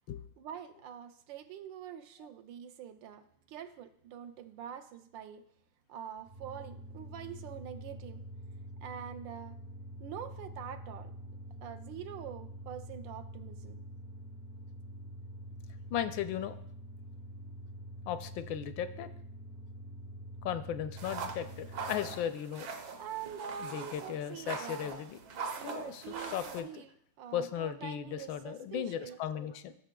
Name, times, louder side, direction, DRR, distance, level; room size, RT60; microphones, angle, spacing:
voice 1, 0.4-5.4 5.9-8.2 8.8-9.6 10.0-11.1 11.6-13.8 15.6-15.7 23.0-25.0 25.6-29.2, right 9 dB, 80° right, 1.3 m, -45 dB
sound 1, 6.2-22.3, equal, 40° right, 0.6 m, -46 dB
voice 2, 15.9-16.6 18.1-19.1 20.4-22.7 23.6-25.2 25.6-26.8 27.3-29.8, left 9 dB, 80° left, 1.3 m, -36 dB
sound 2, 21.0-26.6, right 5 dB, 60° right, 1.3 m, -42 dB
15.0 x 6.5 x 2.2 m
omnidirectional pair, 2.1 m